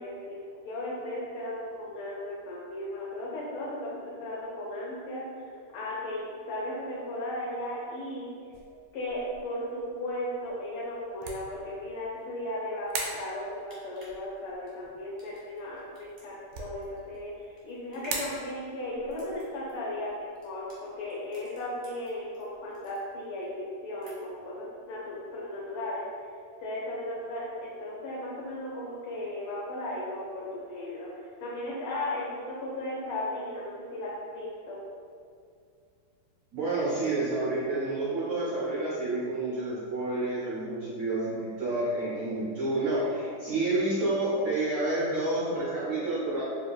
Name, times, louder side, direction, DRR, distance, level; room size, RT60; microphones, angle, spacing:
voice 1, 0.0-8.3 8.9-26.0 26.6-34.8, left 1 dB, 80° left, -7 dB, 1.5 m, -36 dB
sound 1, 8.5-22.7, right 3 dB, 90° right, 1.5 m, -44 dB
sound 2, 13.7-22.4 22.7-23.5 23.8-24.5 24.8-24.9, right 1 dB, 50° right, 0.4 m, -53 dB
voice 2, 36.5-46.4, right 2 dB, 70° right, -8 dB, 0.8 m, -29 dB
4.7 x 2.5 x 2.2 m, 2.2 s
omnidirectional pair, 2.4 m